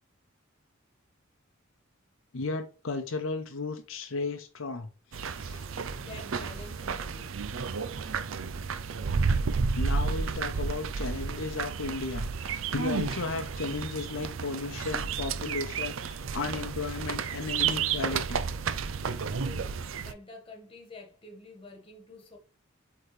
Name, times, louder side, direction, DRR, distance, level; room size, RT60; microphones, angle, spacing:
voice 1, 2.3-5.7 9.7-18.4, left 3 dB, 75° left, 0.8 m, -35 dB
sound 1, 5.1-20.1, right 5 dB, 70° right, 0.5 m, -32 dB
voice 2, 6.0-7.4 19.0-22.4, left 3 dB, 25° left, 1.5 m, -48 dB
8.0 x 3.8 x 3.2 m
head